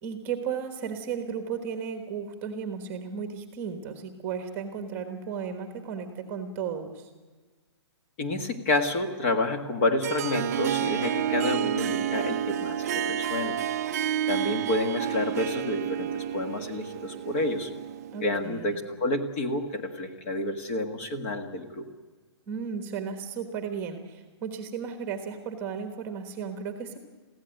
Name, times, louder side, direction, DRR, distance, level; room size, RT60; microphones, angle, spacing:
voice 1, 0.0-7.1 18.1-18.8 22.5-27.0, right 6 dB, 15° right, 6 dB, 1.4 m, -34 dB
voice 2, 8.2-13.6 14.3-17.7 18.2-21.8, left 2 dB, 25° left, 6 dB, 1.6 m, -29 dB
Harp, 10.0-18.5, right 10 dB, 35° right, 0.7 m, -30 dB
22.5 x 15.5 x 9.1 m, 1.4 s
hypercardioid pair, 175°, 15 cm